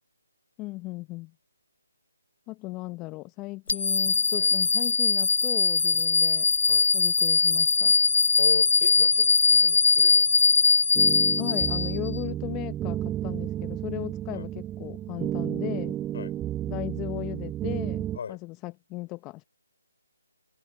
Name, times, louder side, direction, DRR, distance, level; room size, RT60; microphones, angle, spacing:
voice 1, 0.6-1.3 2.5-6.5 6.9-7.9 11.4-16.0 16.7-19.4, left 21 dB, 20° left, 1.0 m, -36 dB
sound 1, 3.7-12.2, left 4 dB, 65° left, 0.5 m, -21 dB
voice 2, 8.4-10.5 14.3-14.5 16.1-16.3 18.1-18.4, left 7 dB, 50° left, 4.9 m, -37 dB
sound 2, 10.9-18.2, right 12 dB, 15° right, 0.5 m, -32 dB
figure-of-eight pair, 145°, 0 cm